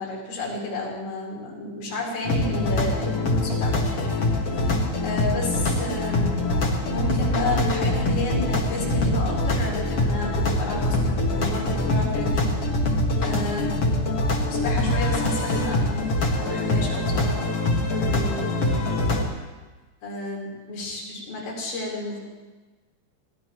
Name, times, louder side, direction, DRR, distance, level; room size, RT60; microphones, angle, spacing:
voice 1, 0.0-4.0 5.0-6.4 6.8-12.5 13.2-13.8 14.4-17.5 17.9-18.8 20.0-22.2, left 2 dB, 80° left, -4 dB, 6.5 m, -32 dB
sound 1, 2.2-19.2, left 1 dB, 55° left, 1.7 m, -24 dB
23.5 x 17.0 x 3.1 m, 1.3 s
omnidirectional pair, 5.0 m